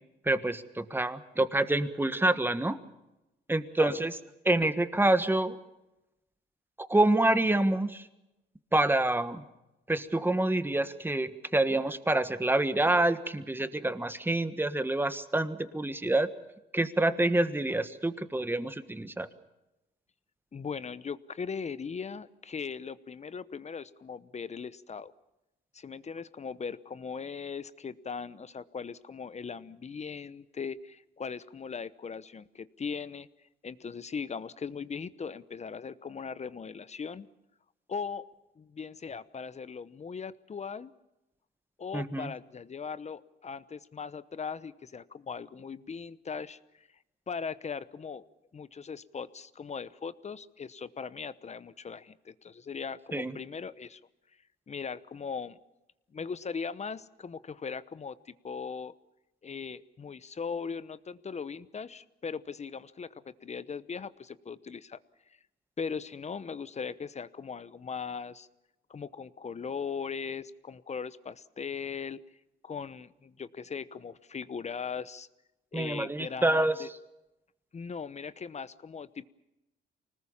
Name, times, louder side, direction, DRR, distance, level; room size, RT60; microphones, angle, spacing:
voice 1, 0.2-2.8 3.5-4.1 4.4-5.6 6.8-8.1 8.7-9.4 9.9-16.3 16.7-19.3 41.9-42.3 53.1-53.3 75.7-76.7, right 2 dB, 10° right, 11 dB, 1.5 m, -27 dB
voice 2, 20.5-25.1 25.7-33.3 33.6-37.3 37.9-38.2 38.6-40.9 41.8-46.9 47.3-48.2 48.5-54.0 54.7-55.6 56.1-58.9 59.4-65.0 65.8-68.5 68.9-72.2 72.6-75.3 75.7-76.9 77.7-79.3, left 5 dB, 35° left, 16 dB, 0.9 m, -39 dB
25.5 x 19.5 x 7.2 m, 0.94 s
cardioid pair, 90°, 20 cm